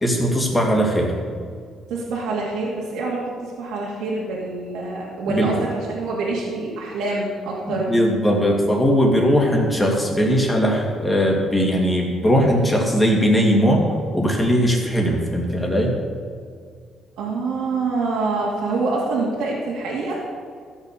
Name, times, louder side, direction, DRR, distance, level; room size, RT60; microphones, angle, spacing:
voice 1, 0.0-1.1 5.3-5.5 7.7-13.8 14.1-15.9, equal, 10° left, -1 dB, 2.6 m, -19 dB
voice 2, 1.9-7.9 17.2-20.2, right 3 dB, 80° right, -4 dB, 2.5 m, -26 dB
14.0 x 7.3 x 6.8 m, 2.1 s
cardioid pair, 125°, 0 cm